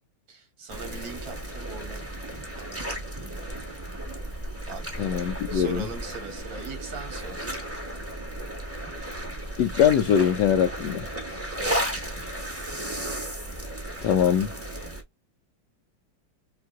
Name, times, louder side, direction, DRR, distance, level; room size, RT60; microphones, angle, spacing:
voice 1, 0.3-2.1 2.6-2.9 4.7-5.2 5.5-7.5 11.5-12.0, right 5 dB, 80° right, 2.2 m, -40 dB
sound 1, 0.7-15.0, right 1 dB, 10° right, 1.0 m, -34 dB
voice 2, 5.0-5.8 9.6-11.0 14.0-14.5, left 8 dB, 75° left, 1.1 m, -22 dB
5.5 x 2.6 x 2.4 m
omnidirectional pair, 2.1 m